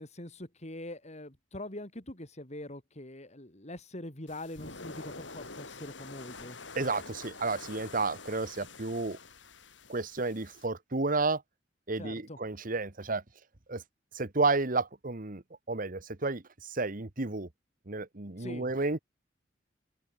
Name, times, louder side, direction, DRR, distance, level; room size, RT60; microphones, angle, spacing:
voice 1, 0.0-6.6 12.0-12.4 18.4-18.6, left 1 dB, 40° left, 4.1 m, -43 dB
sound 1, 4.3-10.7, left 3 dB, 90° left, 7.5 m, -47 dB
voice 2, 6.7-9.2 9.9-11.4 11.9-13.2 13.7-13.8 14.1-15.4 15.7-17.5 17.9-19.0, right 3 dB, 50° right, 1.5 m, -31 dB
open air
head